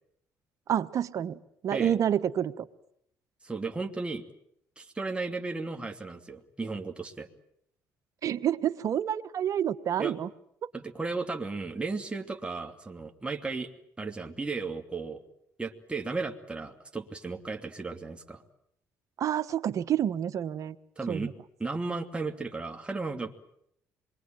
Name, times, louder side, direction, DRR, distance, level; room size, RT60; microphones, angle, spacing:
voice 1, 0.7-2.7 8.2-10.3 19.2-20.8 21.1-21.3, right 10 dB, 55° right, 13 dB, 1.2 m, -28 dB
voice 2, 3.4-4.3 4.8-7.3 10.0-10.1 10.7-13.7 14.0-15.2 15.6-18.4 21.0-21.3 21.6-23.3, right 3 dB, 15° right, 4 dB, 2.7 m, -35 dB
27.0 x 23.0 x 9.1 m, 0.73 s
supercardioid pair, 80°, 6 cm